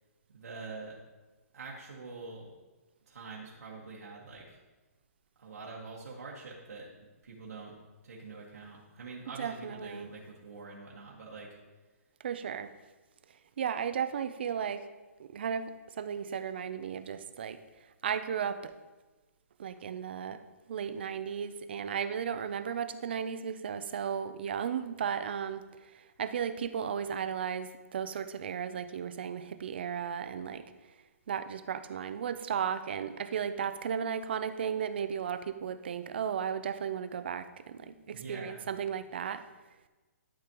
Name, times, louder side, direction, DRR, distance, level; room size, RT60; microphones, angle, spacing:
voice 1, 0.3-1.0 1.5-2.5 3.1-4.6 5.4-7.8 8.0-11.6 38.1-38.6, right 3 dB, 85° right, -4 dB, 1.6 m, -45 dB
voice 2, 9.4-10.1 12.2-12.7 13.6-14.8 15.2-17.6 18.0-18.7 19.6-20.4 20.7-25.6 25.9-30.6 31.3-39.4, right 7 dB, 40° right, 11 dB, 0.4 m, -35 dB
12.0 x 5.1 x 3.0 m, 1.2 s
hypercardioid pair, 170°, 8 cm